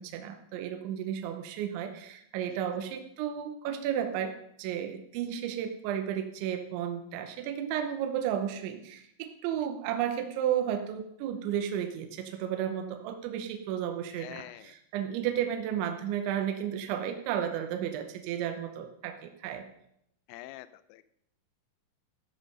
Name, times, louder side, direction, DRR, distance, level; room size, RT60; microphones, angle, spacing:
voice 1, 0.0-19.7, right 9 dB, 75° right, 6 dB, 3.0 m, -33 dB
voice 2, 14.1-14.7 20.3-21.1, left 16 dB, 85° left, 14 dB, 2.6 m, -46 dB
13.5 x 7.4 x 5.4 m, 0.74 s
omnidirectional pair, 5.7 m